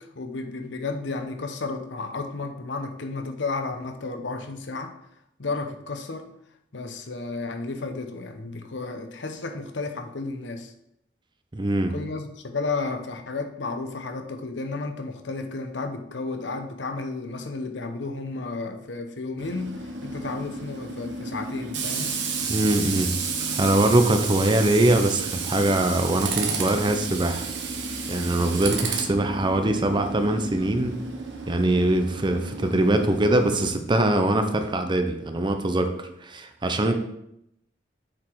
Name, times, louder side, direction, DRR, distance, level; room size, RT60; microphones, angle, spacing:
voice 1, 0.0-4.9 5.4-6.3 6.7-10.7 11.9-22.1, left 3 dB, 70° left, 6 dB, 0.8 m, -32 dB
voice 2, 11.5-11.9 22.5-23.1 23.4-27.4 28.1-31.0 31.5-37.0, right 1 dB, 25° right, 7 dB, 0.7 m, -22 dB
Tools, 19.4-33.7, right 4 dB, 70° right, 1.1 m, -32 dB
7.3 x 5.0 x 4.6 m, 0.78 s
head